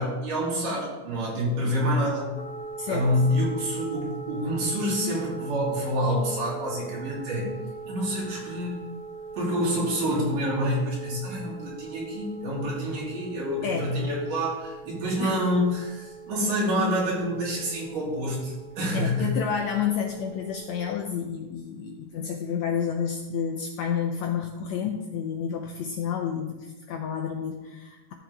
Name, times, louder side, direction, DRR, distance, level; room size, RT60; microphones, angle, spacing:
voice 1, 0.0-2.3 2.9-7.5 7.9-8.8 9.3-19.4, equal, 75° right, -6 dB, 4.8 m, -27 dB
sound 1, 2.4-21.0, right 5 dB, 70° left, 1.9 m, -41 dB
voice 2, 2.8-3.2 13.6-13.9 15.2-15.4 18.9-28.1, left 7 dB, 90° left, 4 dB, 1.5 m, -30 dB
13.0 x 7.1 x 3.5 m, 1.1 s
omnidirectional pair, 3.8 m